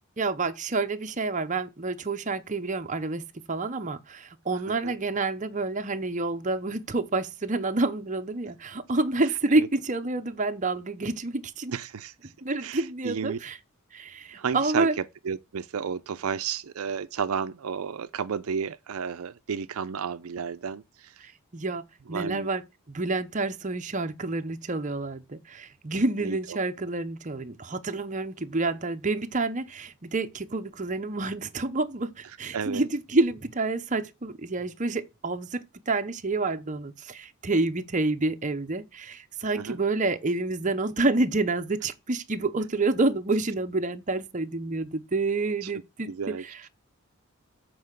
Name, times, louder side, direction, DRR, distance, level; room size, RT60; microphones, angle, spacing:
voice 1, 0.2-3.2 3.5-11.7 12.4-13.6 13.9-14.9 21.2-21.8 22.1-46.7, right 3 dB, 35° right, 0.7 m, -28 dB
voice 2, 11.7-12.1 12.6-13.4 14.4-14.9 15.2-20.8 22.1-22.5 26.2-26.4 32.5-32.9 39.6-39.8 45.6-45.7 46.1-46.4, right 6 dB, 75° right, 0.5 m, -32 dB
7.8 x 4.6 x 6.5 m
head